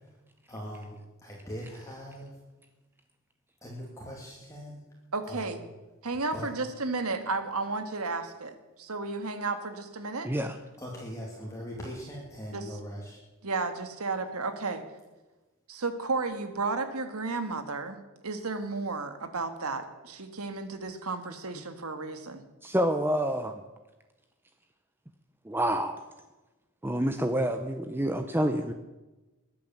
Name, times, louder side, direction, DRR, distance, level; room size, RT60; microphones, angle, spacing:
voice 1, 0.5-2.3 3.6-4.8 5.3-5.6 6.3-6.5 10.8-13.2, equal, 15° left, -3 dB, 2.6 m, -41 dB
voice 2, 5.1-5.6 6.0-10.3 12.5-12.8 13.4-14.8 15.7-18.0 18.2-22.4, right 3 dB, 80° right, 9 dB, 1.7 m, -33 dB
voice 3, 10.2-10.6 22.6-23.6 25.4-26.0 26.8-28.7, right 1 dB, 10° right, 7 dB, 0.6 m, -28 dB
21.5 x 8.7 x 7.3 m, 1.1 s
head